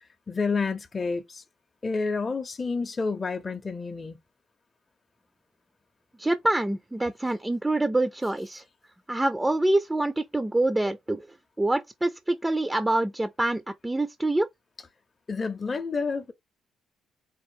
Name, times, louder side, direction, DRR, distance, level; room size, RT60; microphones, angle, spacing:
voice 1, 0.3-1.4 1.8-4.2 15.3-16.3, left 4 dB, 30° left, 0.6 m, -29 dB
voice 2, 6.2-8.6 9.1-11.3 11.6-14.5, right 2 dB, 10° right, 0.4 m, -26 dB
4.2 x 2.4 x 4.5 m
cardioid pair, 90°, 0 cm